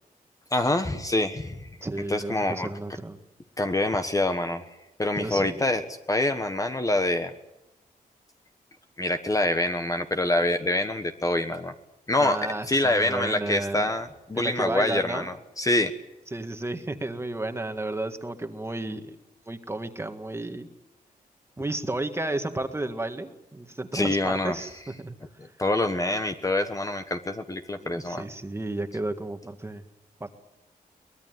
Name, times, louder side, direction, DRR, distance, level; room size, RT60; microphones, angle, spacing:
voice 1, 0.5-1.7 2.1-2.7 3.6-4.6 5.0-7.3 9.0-11.7 12.1-15.9 23.9-24.6 25.4-28.2, left 2 dB, 20° left, 7 dB, 1.3 m, -26 dB
voice 2, 1.8-3.2 5.1-5.6 12.2-13.9 14.3-15.3 16.3-19.2 19.5-20.7 21.6-25.1 27.8-29.8 30.2-30.3, right 2 dB, 15° right, 7 dB, 1.8 m, -32 dB
23.5 x 20.0 x 9.5 m, 0.93 s
wide cardioid pair, 130°, 15 cm